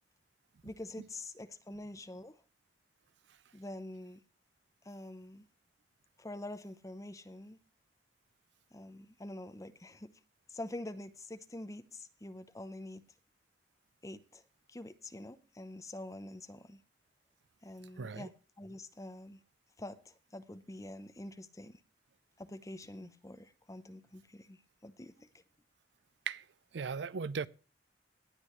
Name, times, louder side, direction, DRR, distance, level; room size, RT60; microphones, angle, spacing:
voice 1, 0.6-2.4 3.5-4.2 4.8-5.4 6.2-7.6 8.7-10.1 10.5-13.0 14.0-14.4 14.7-16.8 17.6-19.4 19.8-21.8 22.4-25.3, left 1 dB, 20° left, 0.7 m, -46 dB
voice 2, 18.0-18.3 26.3-26.4 26.7-27.5, right 5 dB, 70° right, 0.5 m, -37 dB
18.0 x 8.4 x 3.1 m
head